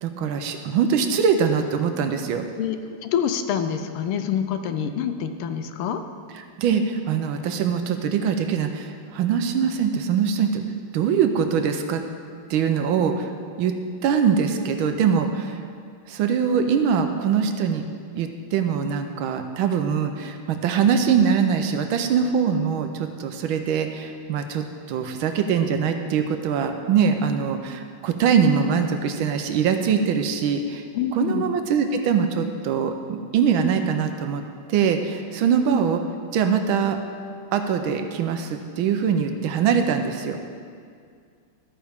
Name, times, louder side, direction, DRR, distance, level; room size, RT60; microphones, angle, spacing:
voice 1, 0.0-2.5 6.3-10.6 10.9-12.0 12.5-13.3 13.6-13.7 14.0-15.6 16.1-17.8 18.1-30.8 31.1-34.4 34.7-36.0 36.3-37.0 37.5-40.4, right 7 dB, 75° right, 6 dB, 1.4 m, -23 dB
voice 2, 3.0-6.0 30.9-31.5, left 8 dB, 85° left, 9 dB, 1.5 m, -26 dB
12.5 x 8.8 x 3.6 m, 2.2 s
omnidirectional pair, 2.4 m